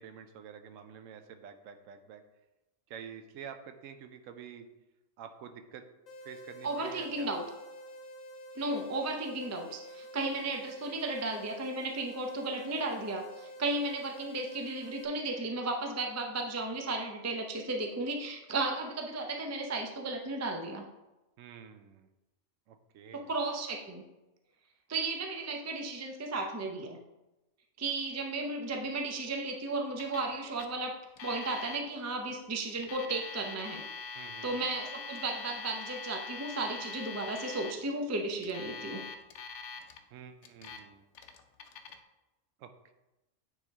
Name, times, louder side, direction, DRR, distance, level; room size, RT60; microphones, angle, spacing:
voice 1, 0.0-2.2 2.9-4.7 5.2-5.8 6.2-7.3 21.4-22.1 22.7-23.3 34.1-34.6 40.1-41.0 42.6-42.9, right 8 dB, 85° right, 7 dB, 1.0 m, -48 dB
sound 1, 6.1-15.1, equal, 85° left, 1.2 m, -48 dB
voice 2, 6.6-7.4 8.6-20.8 23.1-24.0 24.9-27.0 27.8-30.9 31.2-33.8 34.4-39.0, right 2 dB, 25° right, 1 dB, 0.3 m, -34 dB
Alarm, 30.0-30.3 30.6-30.7 31.2-31.8 32.7-37.7 38.4-40.0 40.4-40.8 41.1-42.0, left 4 dB, 70° left, 0.9 m, -43 dB
9.1 x 3.5 x 3.5 m, 1.0 s
omnidirectional pair, 1.3 m